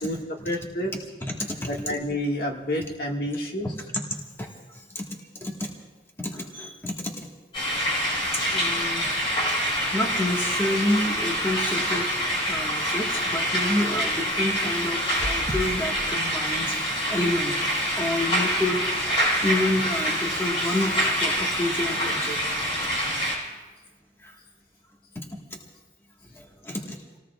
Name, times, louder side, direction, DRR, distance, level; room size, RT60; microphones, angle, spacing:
voice 1, 0.0-0.9 1.7-3.7, left 1 dB, 60° left, 0 dB, 1.7 m, -29 dB
voice 2, 1.2-1.7 3.9-4.0 4.4-5.0 5.4-5.7 6.2-7.3 8.3-9.1 9.5-9.6 9.9-12.1 12.5-18.8 19.4-22.4 24.2-24.3 25.1-25.2 26.3-27.0, left 1 dB, 15° left, 0 dB, 1.5 m, -29 dB
sound 1, 7.5-23.3, equal, 30° left, 5.6 m, -26 dB
sound 2, 15.2-19.9 20.4-20.7 21.1-21.2, right 1 dB, 30° right, 1.0 m, -39 dB
29.5 x 18.0 x 2.4 m, 1.3 s
head